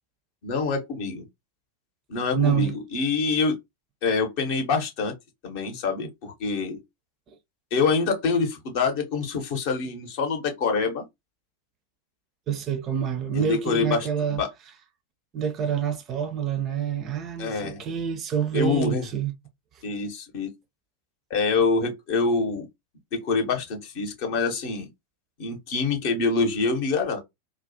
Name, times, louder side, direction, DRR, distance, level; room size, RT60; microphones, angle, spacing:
voice 1, 0.4-1.2 2.1-3.6 4.0-5.1 5.4-6.8 7.7-11.0 13.3-14.5 17.4-17.8 18.5-19.1 19.8-20.5 21.3-22.7 23.1-24.9 25.4-27.2, left 4 dB, 45° left, 0.7 m, -26 dB
voice 2, 2.3-2.8 7.3-7.4 12.5-14.4 15.3-19.3, right 8 dB, 30° right, 0.4 m, -27 dB
2.3 x 2.0 x 2.6 m
figure-of-eight pair, 90°, 0 cm